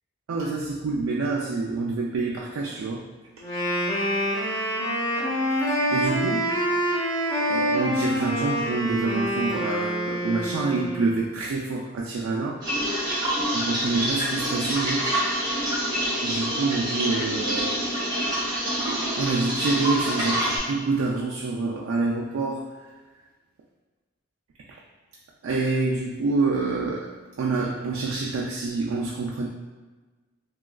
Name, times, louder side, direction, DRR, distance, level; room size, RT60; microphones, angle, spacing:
voice 1, 0.3-3.1 5.7-6.6 7.5-12.7 13.5-15.1 16.2-18.0 18.9-22.9 25.4-27.1 27.4-29.5, right 3 dB, 80° right, -3 dB, 0.3 m, -27 dB
Wind instrument woodwind instrument, 3.4-11.1, equal, 70° left, 1.2 m, -26 dB
sound 1, 12.6-20.6, equal, 20° right, 0.8 m, -26 dB
2.9 x 2.3 x 2.3 m, 1.3 s
head